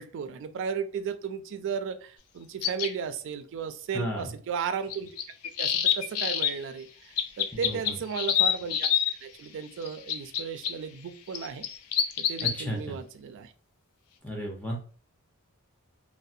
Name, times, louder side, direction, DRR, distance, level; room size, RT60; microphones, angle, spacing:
voice 1, 0.0-5.1 5.6-8.9 9.2-11.7 12.3-13.5, right 6 dB, 55° right, 10 dB, 0.3 m, -35 dB
sound 1, 2.6-2.9 4.9-6.5 7.2-9.1 9.8-10.7 11.3-12.6, left 9 dB, 75° left, 0.4 m, -26 dB
voice 2, 3.9-4.3 7.6-8.0 12.4-13.0 14.2-14.8, equal, 5° left, -2 dB, 0.5 m, -33 dB
2.6 x 2.1 x 2.4 m, 0.41 s
head